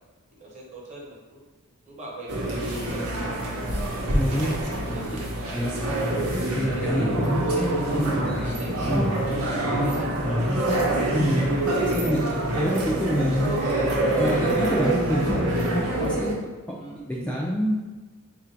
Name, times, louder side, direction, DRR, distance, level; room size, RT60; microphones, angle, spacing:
voice 1, 0.3-1.4 1.8-3.4 3.8-6.1 6.6-8.1 8.4-10.1 13.2-13.8 16.8-17.1, right 1 dB, 35° right, -3 dB, 1.0 m, -42 dB
sound 1, 2.3-16.3, right 1 dB, 75° right, 0.9 m, -26 dB
voice 2, 4.1-5.0 5.5-5.9 6.5-8.6 8.9-9.1 10.2-10.6 11.1-11.5 11.9-13.5 14.1-16.3 16.7-17.8, equal, 5° left, -4 dB, 0.3 m, -27 dB
3.2 x 2.5 x 4.4 m, 1.3 s
head